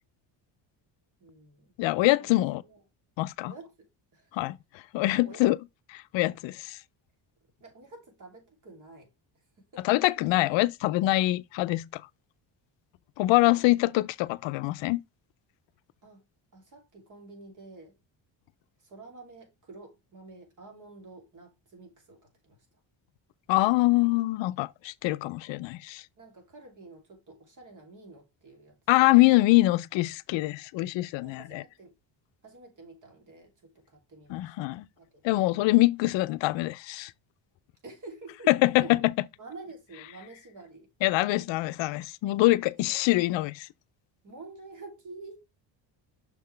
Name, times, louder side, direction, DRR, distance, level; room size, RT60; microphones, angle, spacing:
voice 1, 1.2-1.7 2.2-2.3 2.6-2.8 3.5-4.4 5.2-5.5 7.6-9.1 9.6-9.9 13.2-13.7 16.0-16.2 16.5-18.0 18.8-22.7 26.2-29.1 31.2-31.9 32.4-35.4 37.8-38.5 38.8-39.0 39.4-40.9 42.9-43.0 44.2-45.4, right 3 dB, 40° right, 3.0 m, -49 dB
voice 2, 1.8-2.6 3.2-3.5 4.3-5.6 6.1-6.8 9.8-12.0 13.2-15.0 23.5-26.0 28.9-31.6 34.3-34.8 35.2-37.1 38.5-39.1 41.0-43.7, left 19 dB, 80° left, 0.5 m, -24 dB
6.3 x 5.7 x 3.2 m
cardioid pair, 145°, 45 cm